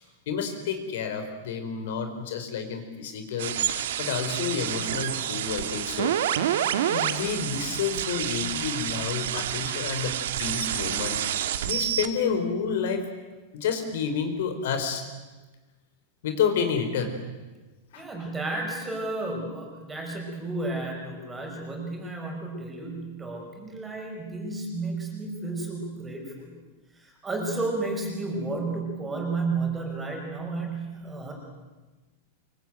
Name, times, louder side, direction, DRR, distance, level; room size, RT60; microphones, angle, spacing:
voice 1, 0.3-3.6 4.0-6.2 6.9-13.1 13.5-15.0 16.2-17.2 17.9-18.1, left 6 dB, 65° left, 7 dB, 4.4 m, -29 dB
sound 1, 3.4-12.1, right 10 dB, 75° right, 2.0 m, -28 dB
voice 2, 17.9-26.5 26.9-31.3, right 3 dB, 10° right, 1 dB, 5.6 m, -32 dB
24.5 x 23.5 x 9.3 m, 1.2 s
supercardioid pair, 165°, 0 cm